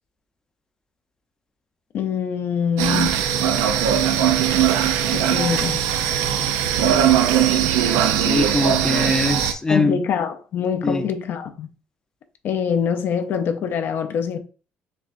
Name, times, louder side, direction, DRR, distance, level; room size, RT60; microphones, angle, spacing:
voice 1, 1.9-3.2 5.1-5.8 9.7-11.7 12.4-14.4, left 7 dB, 60° left, 0.5 m, -24 dB
sound 1, 2.8-9.5, right 9 dB, 90° right, 0.5 m, -20 dB
voice 2, 8.2-10.0 10.8-11.0, left 2 dB, 15° left, 0.6 m, -22 dB
6.5 x 2.3 x 2.6 m
cardioid pair, 90°, 4 cm